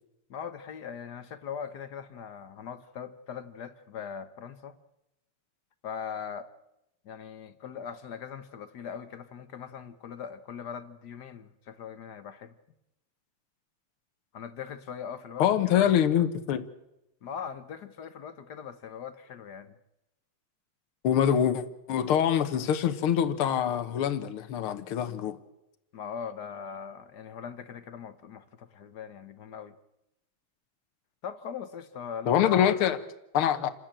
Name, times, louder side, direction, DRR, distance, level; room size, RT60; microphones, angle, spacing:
voice 1, 0.3-4.8 5.8-6.5 7.0-12.6 14.3-15.9 17.2-19.7 25.9-29.7 31.2-32.8, left 7 dB, 55° left, 1.4 m, -40 dB
voice 2, 15.4-16.7 21.0-25.4 32.3-33.0 33.3-33.7, left 9 dB, 75° left, 2.0 m, -25 dB
28.5 x 13.5 x 8.9 m
omnidirectional pair, 2.4 m